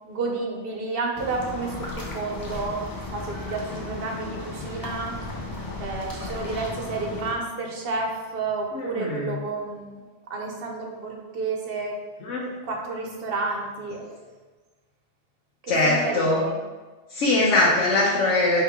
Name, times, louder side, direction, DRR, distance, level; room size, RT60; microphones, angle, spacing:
voice 1, 0.1-5.1 5.8-10.0 10.3-11.9 12.3-14.0 15.6-16.6, right 3 dB, 55° right, 1 dB, 0.9 m, -31 dB
sound 1, 1.1-7.3, left 2 dB, 25° left, 0.4 m, -35 dB
voice 2, 8.7-9.4 12.2-12.4 13.9-14.0 15.7-16.4 17.1-18.6, left 2 dB, 80° left, -4 dB, 1.0 m, -22 dB
4.7 x 3.0 x 3.6 m, 1.3 s
omnidirectional pair, 1.2 m